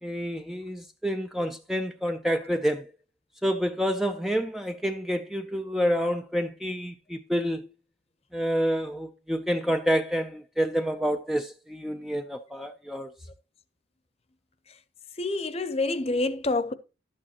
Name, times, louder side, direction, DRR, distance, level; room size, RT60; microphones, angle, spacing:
voice 1, 0.0-2.9 3.4-7.7 8.3-13.1, equal, ahead, 0.4 m, -28 dB
voice 2, 15.2-16.7, left 2 dB, 30° left, 0.7 m, -27 dB
11.5 x 8.7 x 2.9 m
head